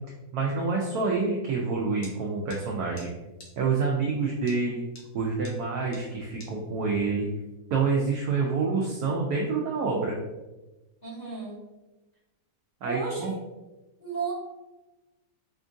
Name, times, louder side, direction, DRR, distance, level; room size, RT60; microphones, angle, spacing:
voice 1, 0.3-3.1 3.6-4.8 5.1-7.3 7.7-10.2 12.8-13.3, right 4 dB, 75° right, -2 dB, 0.9 m, -27 dB
sound 1, 2.0-2.1 2.5-2.6 3.0-3.1 3.4-3.5 4.5-4.6 4.9-5.1 5.4-5.5 5.9-6.0 6.4-6.5, left 1 dB, 60° left, 1.0 m, -46 dB
voice 2, 11.0-11.6 12.8-13.3 14.0-14.3, right 4 dB, 25° left, -11 dB, 1.1 m, -33 dB
4.4 x 2.4 x 2.5 m, 1.1 s
omnidirectional pair, 2.1 m